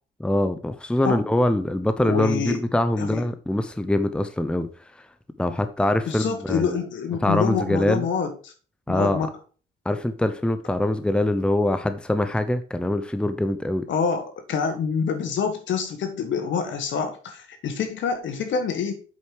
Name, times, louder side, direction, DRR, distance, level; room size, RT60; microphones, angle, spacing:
voice 1, 0.2-4.7 5.0-5.1 5.4-6.8 7.2-8.0 8.9-9.3 9.9-13.9, left 1 dB, 5° left, 0.8 m, -23 dB
voice 2, 2.1-2.6 3.0-3.2 6.1-8.5 8.9-9.3 13.9-19.0, left 6 dB, 70° left, 1.9 m, -26 dB
7.9 x 5.2 x 4.8 m
cardioid pair, 90°, 20 cm